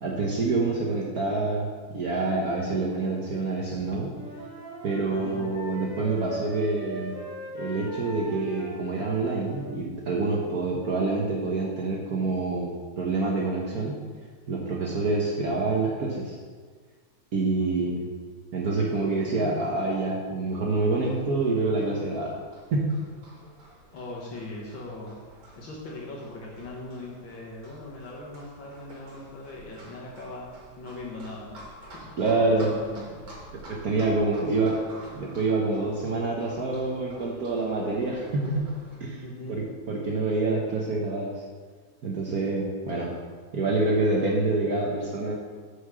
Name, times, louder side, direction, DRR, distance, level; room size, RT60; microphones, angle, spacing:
voice 1, 0.0-4.1 4.8-7.2 7.5-14.0 14.5-16.4 17.3-18.1 18.5-22.4 22.7-22.9 32.2-32.7 33.5-34.8 35.1-38.7 39.0-39.2 39.5-41.4 42.0-43.1 43.5-45.3, right 3 dB, 55° right, -2 dB, 1.4 m, -27 dB
voice 2, 3.6-4.0 5.1-5.4 19.4-19.5 23.9-25.2 25.6-31.6 31.9-33.2 34.2-34.7 39.2-39.6, left 2 dB, 75° left, -4 dB, 2.1 m, -40 dB
Wind instrument woodwind instrument, 4.1-9.7, right 1 dB, 25° right, 2.4 m, -38 dB
Livestock farm animals working animals, 20.9-39.0, right 1 dB, 80° right, 3.2 m, -49 dB
6.5 x 5.5 x 6.8 m, 1.5 s
omnidirectional pair, 2.1 m